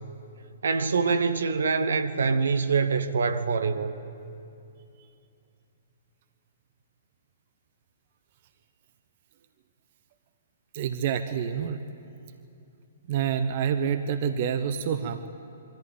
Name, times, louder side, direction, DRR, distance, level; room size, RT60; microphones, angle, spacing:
voice 1, 0.6-3.9, right 5 dB, 70° right, 10 dB, 1.2 m, -25 dB
voice 2, 10.7-11.8 13.1-15.3, right 8 dB, 45° right, 10 dB, 1.0 m, -27 dB
22.5 x 14.5 x 9.5 m, 2.7 s
figure-of-eight pair, 120°, 0 cm